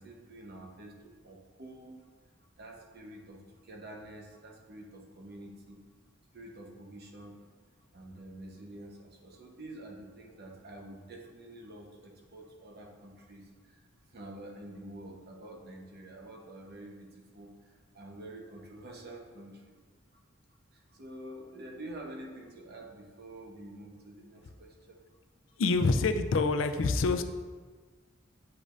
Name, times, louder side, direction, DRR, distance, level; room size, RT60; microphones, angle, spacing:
voice 1, 0.0-2.0 2.6-5.8 6.3-7.5 7.9-13.8 14.1-19.8 20.7-25.0, right 1 dB, 55° right, 0 dB, 1.0 m, -48 dB
voice 2, 25.6-27.2, left 3 dB, 70° left, 9 dB, 0.4 m, -26 dB
8.3 x 5.2 x 2.5 m, 1.5 s
head